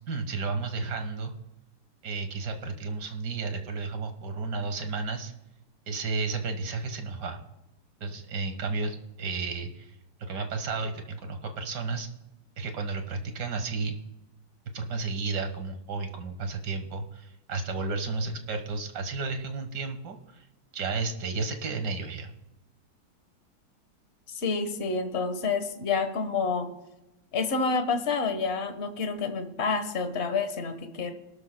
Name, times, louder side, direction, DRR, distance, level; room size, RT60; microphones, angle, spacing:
voice 1, 0.1-1.3 2.0-5.3 5.9-7.4 8.0-12.1 12.6-14.0 14.7-20.5 20.7-22.3, right 4 dB, 55° right, 6 dB, 1.9 m, -32 dB
voice 2, 24.3-26.7 27.3-31.1, left 4 dB, 35° left, 7 dB, 1.3 m, -28 dB
21.5 x 12.5 x 2.2 m, 0.95 s
omnidirectional pair, 2.2 m